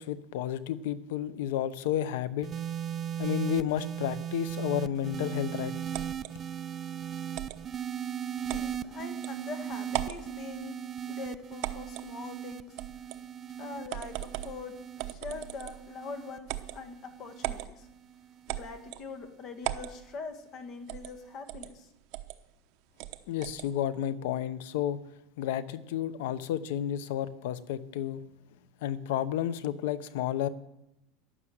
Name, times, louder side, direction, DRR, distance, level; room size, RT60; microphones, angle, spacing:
voice 1, 0.0-2.5 3.2-5.8 23.3-25.0 25.4-28.2 28.8-30.5, left 11 dB, 75° left, 0.9 m, -31 dB
sound 1, 2.4-18.9 19.8-20.2, right 9 dB, 25° right, 0.5 m, -38 dB
sound 2, 5.9-6.3 7.3-7.6 8.5-8.7 9.2-9.3 9.9-10.2 11.6-12.1 12.8-13.2 13.9-14.6 15.0-15.9 16.5-16.8 17.4-17.7 18.5-19.1 19.6-19.9 20.9-21.1 21.5-21.7 22.1-22.4 23.0-23.7, right 15 dB, 55° right, 0.9 m, -37 dB
voice 2, 8.4-10.8 11.1-12.8 13.6-17.9 18.5-21.9, left 4 dB, 40° left, 1.8 m, -43 dB
12.0 x 11.0 x 7.8 m
supercardioid pair, 145°, 0 cm